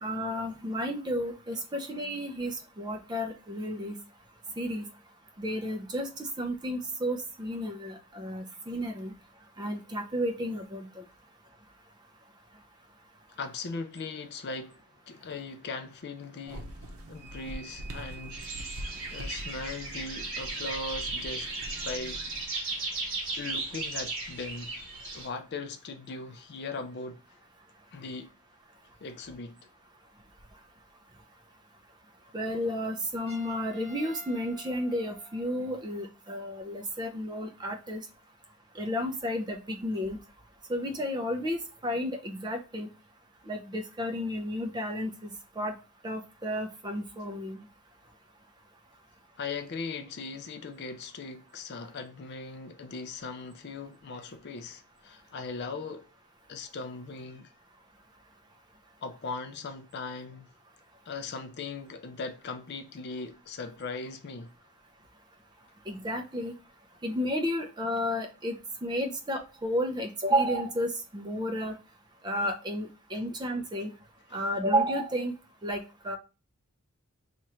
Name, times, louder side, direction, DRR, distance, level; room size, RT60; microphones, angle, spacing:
voice 1, 0.0-4.0 4.6-4.9 5.4-9.1 9.6-11.0 32.3-38.0 38.8-40.2 40.7-42.9 43.5-45.7 46.0-47.6 65.9-66.5 67.0-68.5 68.8-71.7 72.2-73.9 74.3-75.3 75.6-76.2, equal, 20° right, 0.5 m, -32 dB
voice 2, 13.4-16.8 17.1-18.4 19.1-21.5 21.8-22.2 23.4-24.8 25.1-27.2 27.9-28.3 29.0-29.6 49.4-56.1 56.5-57.5 59.0-60.5 61.1-64.5 74.3-74.4, left 4 dB, 50° left, 0.4 m, -39 dB
sound 1, 16.5-22.5, right 1 dB, 75° right, 0.7 m, -43 dB
sound 2, 18.3-25.3, right 3 dB, 55° right, 1.2 m, -36 dB
Trumpet, 33.3-35.9, right 1 dB, 15° left, 1.4 m, -51 dB
3.0 x 2.4 x 4.3 m
head